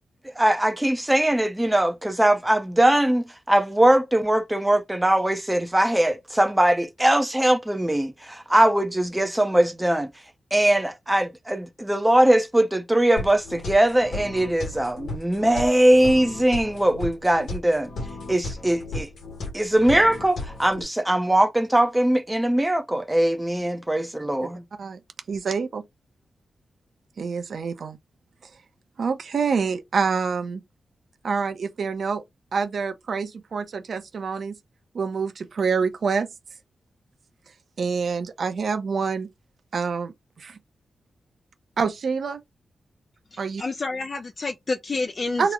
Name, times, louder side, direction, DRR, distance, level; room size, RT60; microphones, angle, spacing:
voice 1, 0.4-10.1 10.5-17.9 18.3-19.1 19.5-24.6, right 1 dB, 10° right, 0.6 m, -21 dB
sound 1, 13.2-20.8, left 2 dB, 85° left, 1.1 m, -35 dB
voice 2, 25.3-25.8 27.2-28.0 29.0-30.6 31.2-32.2 32.5-34.5 34.9-36.3 37.8-39.3 39.7-40.1 40.4-40.6 41.8-42.4 43.4-43.6 45.4-45.5, right 5 dB, 60° right, 0.6 m, -26 dB
voice 3, 43.3-45.5, left 3 dB, 40° left, 0.4 m, -29 dB
2.9 x 2.0 x 3.6 m
wide cardioid pair, 125°, 0 cm